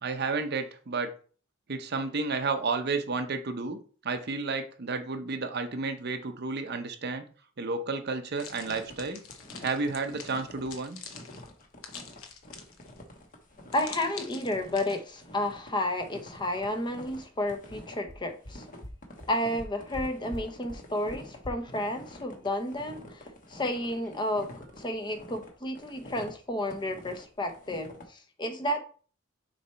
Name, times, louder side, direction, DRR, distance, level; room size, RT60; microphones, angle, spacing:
voice 1, 0.0-1.1 1.7-3.8 4.0-7.2 7.6-9.2 9.6-11.0, right 4 dB, 50° right, 8 dB, 0.7 m, -31 dB
sound 1, 8.4-13.0 13.7-15.0, left 7 dB, 85° left, 0.9 m, -45 dB
sound 2, 8.5-28.0, left 1 dB, 40° left, 1.2 m, -48 dB
voice 2, 13.7-18.6 19.3-23.2 23.5-24.5 24.8-28.8, left 1 dB, 20° left, 6 dB, 0.7 m, -31 dB
sound 3, 17.3-17.4 17.7-17.8 18.1-18.2 18.4-18.5 18.8-18.9 19.2-19.3 19.6-20.0 20.3-20.4 20.7-20.8 21.1-21.2 21.4-21.5, equal, 60° left, 1.1 m, -40 dB
6.7 x 3.2 x 4.3 m, 0.40 s
head